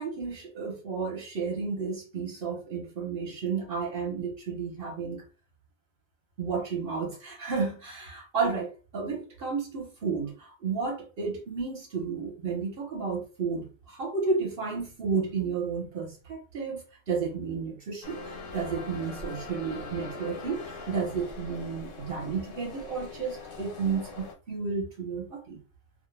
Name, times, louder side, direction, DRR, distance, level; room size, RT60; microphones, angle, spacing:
voice 1, 0.0-5.2 6.4-25.6, right 5 dB, 50° right, 0 dB, 0.9 m, -32 dB
sound 1, 18.0-24.3, left 3 dB, 70° left, 1.0 m, -42 dB
2.4 x 2.1 x 3.2 m, 0.34 s
omnidirectional pair, 1.3 m